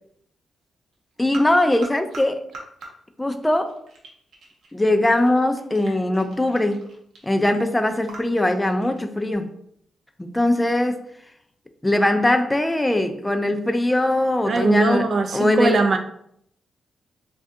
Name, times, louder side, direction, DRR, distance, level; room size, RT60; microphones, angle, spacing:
sound 1, 0.9-2.2 2.5-2.9 3.3-9.3, right 3 dB, 80° right, 0.7 m, -43 dB
voice 1, 1.2-2.4 3.2-3.8 4.7-6.9 7.2-9.5 10.2-11.1 11.8-16.0, left 1 dB, 10° left, 0.3 m, -21 dB
voice 2, 14.5-16.0, right 3 dB, 55° right, 0.4 m, -19 dB
2.6 x 2.3 x 3.5 m
cardioid pair, 80°, 0 cm